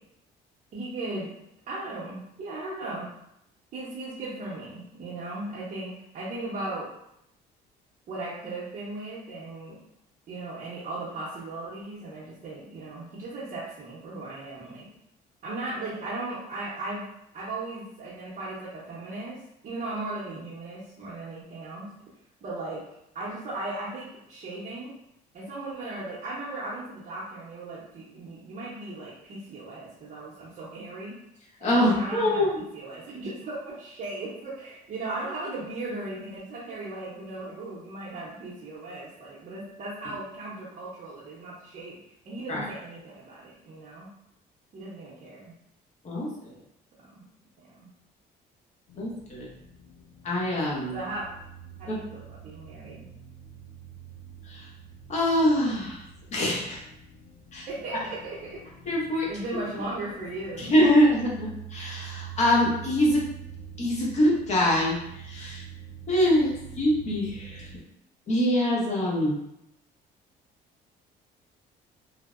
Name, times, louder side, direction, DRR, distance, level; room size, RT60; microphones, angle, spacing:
voice 1, 0.7-1.3 1.7-3.1 3.7-6.9 8.1-9.8 10.3-14.9 15.4-17.1 17.3-19.4 19.6-21.9 22.4-22.8 23.1-24.9 25.3-31.2 31.6-42.0 42.2-44.1 44.7-45.5 47.1-47.2 47.6-47.9 50.9-51.3 51.8-53.0 57.7-58.6 59.3-60.7, right 2 dB, 50° right, -7 dB, 0.6 m, -37 dB
voice 2, 31.6-32.5 40.0-40.1 42.5-42.6 46.0-46.6 49.0-49.5 50.2-51.0 51.9-52.0 54.4-54.7 55.1-56.0 56.3-56.8 57.5-58.0 58.9-59.3 60.6-63.3 63.8-65.6 66.1-67.7 68.3-69.4, left 1 dB, 45° left, -4 dB, 0.8 m, -24 dB
sound 1, 48.9-67.8, right 7 dB, 80° left, 0.4 m, -46 dB
2.6 x 2.0 x 2.4 m, 0.80 s
cardioid pair, 110°, 17 cm